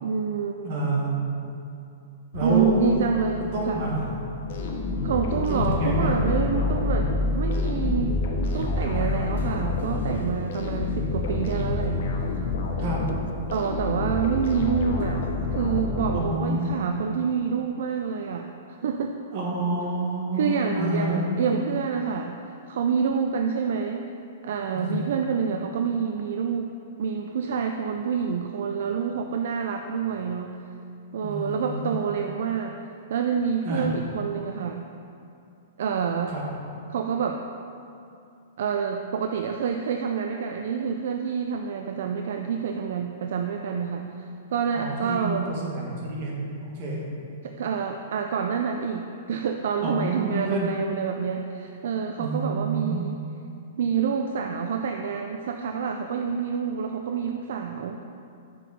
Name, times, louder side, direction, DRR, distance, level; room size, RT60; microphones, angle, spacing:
voice 1, 0.0-0.6 2.4-3.8 5.0-8.2 8.5-12.0 13.5-15.2 15.5-19.1 20.3-22.4 22.7-24.1 24.4-26.7 27.0-30.6 31.1-32.8 33.1-34.9 35.8-36.4 36.9-37.4 38.6-45.5 47.4-53.2 53.8-58.0, right 6 dB, 70° right, 4 dB, 0.4 m, -27 dB
voice 2, 0.6-1.3 2.3-2.9 3.4-4.1 5.3-6.1 12.8-13.0 16.1-16.8 19.3-21.2 24.7-25.1 31.2-32.1 33.6-33.9 36.3-36.4 44.7-47.0 49.8-50.7 52.2-53.0, right 2 dB, 50° right, -3 dB, 1.6 m, -28 dB
sound 1, 2.3-14.1 15.0-15.3, left 2 dB, 80° left, 0.4 m, -32 dB
sound 2, 4.5-16.7, left 3 dB, 60° left, 0.9 m, -29 dB
6.1 x 4.6 x 5.2 m, 2.6 s
hypercardioid pair, 145°, 0 cm